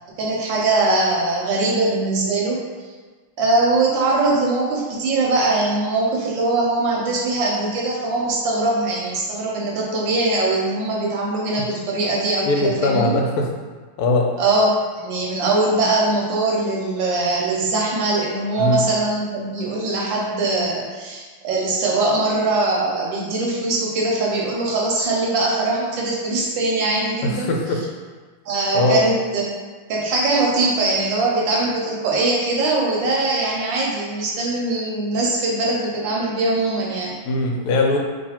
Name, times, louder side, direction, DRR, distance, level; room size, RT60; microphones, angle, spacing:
voice 1, 0.2-2.6 3.4-13.1 14.4-27.5 28.5-29.5 29.9-37.2, right 2 dB, 70° right, -3 dB, 1.2 m, -21 dB
voice 2, 12.5-13.5 14.0-14.3 18.6-18.9 27.2-27.8 28.7-29.0 37.2-38.0, left 2 dB, 85° left, 1 dB, 1.4 m, -20 dB
3.1 x 2.8 x 4.2 m, 1.4 s
omnidirectional pair, 2.4 m